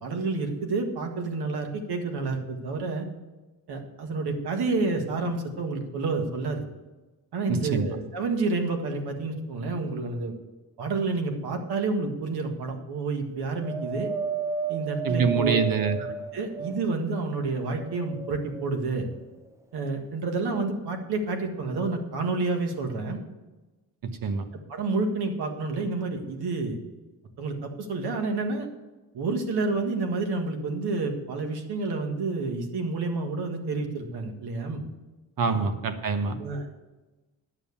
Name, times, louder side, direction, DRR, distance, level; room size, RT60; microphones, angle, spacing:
voice 1, 0.0-3.1 3.7-6.7 7.3-10.3 10.8-14.1 14.7-15.6 16.3-19.1 19.7-23.2 24.7-26.8 27.4-28.7 29.1-34.8 35.5-35.7 36.4-36.8, right 3 dB, 85° right, 4 dB, 1.9 m, -29 dB
voice 2, 7.5-7.9 15.0-16.0 24.2-24.4 35.4-36.4, right 5 dB, 65° right, 8 dB, 1.2 m, -25 dB
Wind, 13.6-17.1 17.7-18.7 19.5-19.6, right 6 dB, 10° right, 0.6 m, -33 dB
10.5 x 7.4 x 7.1 m, 1.1 s
wide cardioid pair, 150°, 38 cm